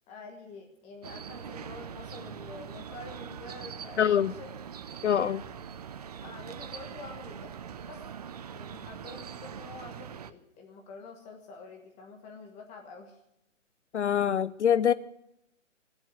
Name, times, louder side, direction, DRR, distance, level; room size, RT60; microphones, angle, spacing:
voice 1, 0.1-4.5 6.2-7.5 7.8-8.0 8.4-13.2, left 3 dB, 20° left, 2 dB, 1.4 m, -47 dB
sound 1, 1.0-10.3, right 8 dB, 35° right, 0.5 m, -42 dB
voice 2, 4.0-4.3 5.0-5.4 13.9-14.9, left 8 dB, 65° left, 17 dB, 0.6 m, -24 dB
18.0 x 7.8 x 9.4 m, 0.82 s
figure-of-eight pair, 135°, 38 cm